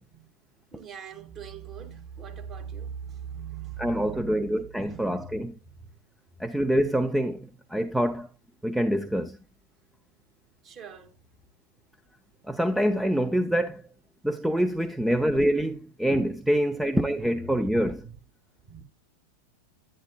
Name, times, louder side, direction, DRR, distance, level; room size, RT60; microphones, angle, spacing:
voice 1, 0.7-5.4 5.8-5.9 10.6-11.2 17.0-18.1 18.7-18.8, right 7 dB, 30° right, 2.2 m, -41 dB
voice 2, 3.8-5.5 6.4-8.3 8.6-9.4 12.5-13.8 14.2-18.0, equal, 5° right, 0.6 m, -25 dB
10.5 x 10.0 x 2.3 m
figure-of-eight pair, 90°, 0 cm